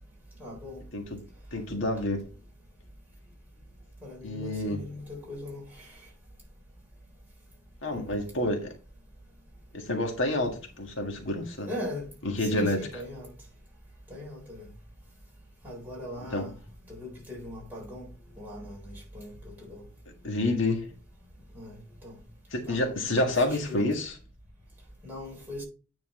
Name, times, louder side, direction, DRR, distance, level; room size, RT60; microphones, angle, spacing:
voice 1, 0.4-0.8 4.0-5.9 7.9-8.2 11.7-12.1 12.4-13.3 14.1-14.6 15.6-16.6 16.9-18.1 18.4-19.8 21.5-21.7 22.0-22.1 22.7-23.9 25.0-25.6, left 1 dB, 10° right, 3.9 m, -40 dB
voice 2, 0.9-2.2 4.2-4.8 7.8-8.7 9.7-11.7 12.2-12.9 16.3-16.5 20.2-20.9 22.5-24.1, left 1 dB, 75° left, 1.7 m, -29 dB
9.6 x 4.4 x 4.3 m
head